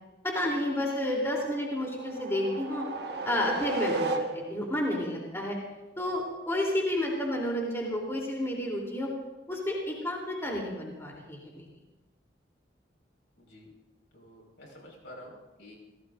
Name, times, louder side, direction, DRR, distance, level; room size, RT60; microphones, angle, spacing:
voice 1, 0.2-2.8 3.2-5.6 6.0-9.1 9.5-11.7, left 1 dB, 15° left, -2 dB, 3.5 m, -31 dB
sound 1, 1.5-4.8, right 3 dB, 65° right, 1.5 m, -34 dB
voice 2, 13.4-13.7 14.1-15.8, left 1 dB, 90° left, -1 dB, 5.4 m, -49 dB
29.5 x 17.0 x 2.7 m, 1.1 s
head